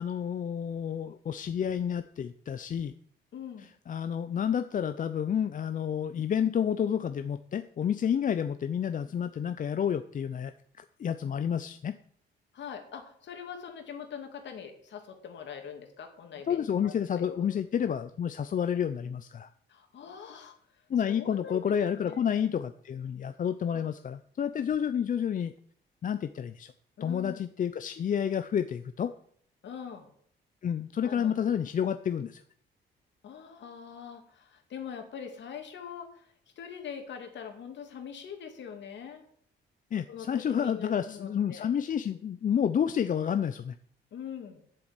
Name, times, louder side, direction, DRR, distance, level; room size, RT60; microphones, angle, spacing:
voice 1, 0.0-2.9 3.9-12.0 16.5-19.5 20.9-25.5 26.0-26.7 27.0-29.1 30.6-32.4 39.9-43.8, left 8 dB, 40° left, 11 dB, 0.5 m, -30 dB
voice 2, 3.3-3.7 12.5-17.5 19.7-20.6 21.1-22.3 23.7-23.9 27.0-27.4 29.6-30.1 31.0-31.3 33.2-36.3 36.6-39.2 40.1-41.7 44.1-44.6, left 7 dB, 65° left, 4 dB, 2.4 m, -43 dB
7.8 x 7.3 x 8.1 m, 0.62 s
cardioid pair, 90°, 20 cm